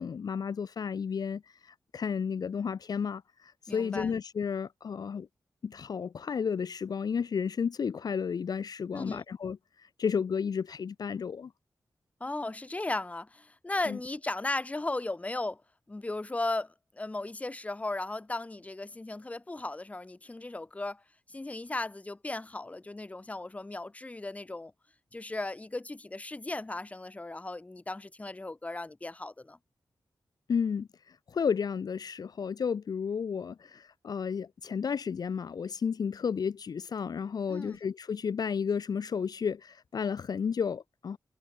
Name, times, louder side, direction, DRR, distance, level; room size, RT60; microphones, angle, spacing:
voice 1, 0.0-5.3 5.6-11.5 13.9-14.0 30.5-30.9 31.3-41.2, left 6 dB, 60° left, 0.5 m, -32 dB
voice 2, 3.7-4.1 8.9-9.2 12.2-15.6 15.9-21.0 21.3-24.7 25.1-29.6 37.5-37.8, left 2 dB, 20° left, 0.8 m, -36 dB
wide cardioid pair, 100°, 8 cm